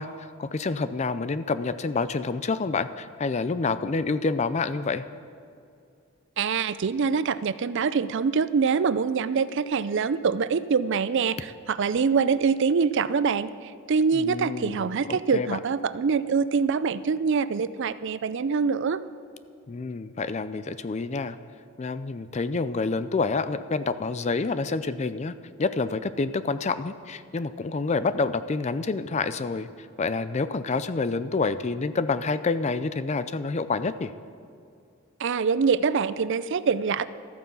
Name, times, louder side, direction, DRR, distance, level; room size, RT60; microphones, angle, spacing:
voice 1, 0.0-5.0 14.1-15.6 19.7-21.4 21.8-25.3 25.6-34.1, left 4 dB, 30° left, 13 dB, 0.4 m, -28 dB
voice 2, 6.4-19.0 35.2-37.1, right 5 dB, 55° right, 15 dB, 0.4 m, -24 dB
13.5 x 9.2 x 7.0 m, 2.5 s
head